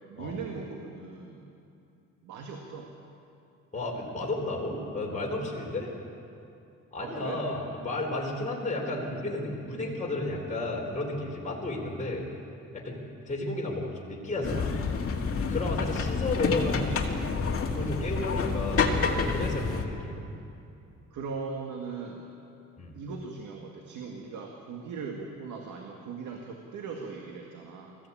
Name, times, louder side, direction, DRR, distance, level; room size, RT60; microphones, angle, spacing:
voice 1, 0.1-1.4 2.2-2.9 7.0-7.4 15.8-16.1 21.1-22.3 22.9-28.0, right 5 dB, 80° right, 2 dB, 2.0 m, -39 dB
voice 2, 3.7-5.9 6.9-12.2 12.7-14.8 15.4-17.2 17.7-20.3 22.8-23.0, left 2 dB, 25° left, -2 dB, 4.5 m, -33 dB
sound 1, 14.4-19.9, left 4 dB, 50° left, 2.1 m, -28 dB
20.0 x 15.0 x 8.8 m, 2.6 s
cardioid pair, 90°, 30 cm